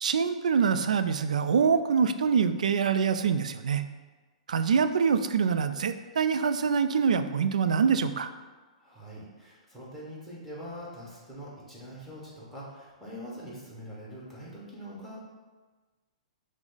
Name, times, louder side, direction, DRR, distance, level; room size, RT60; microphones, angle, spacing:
voice 1, 0.0-3.8 4.5-8.3, right 6 dB, 90° right, 10 dB, 0.3 m, -25 dB
voice 2, 8.8-15.2, equal, 5° left, -7 dB, 1.3 m, -43 dB
6.1 x 2.0 x 3.9 m, 1.3 s
hypercardioid pair, 150°, 4 cm